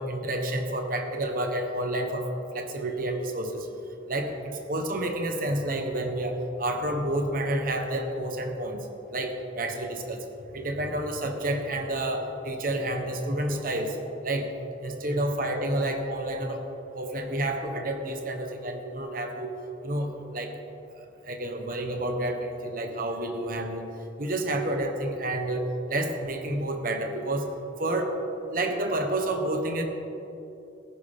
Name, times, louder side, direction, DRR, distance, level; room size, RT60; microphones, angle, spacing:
voice 1, 0.0-3.7 4.1-10.2 10.5-14.0 14.2-14.5 14.8-16.7 16.9-19.5 19.8-20.5 20.9-23.9 24.2-27.5 27.8-28.2 28.5-29.8, right 1 dB, 50° right, 4 dB, 1.2 m, -29 dB
19.0 x 10.5 x 3.7 m, 3.0 s
head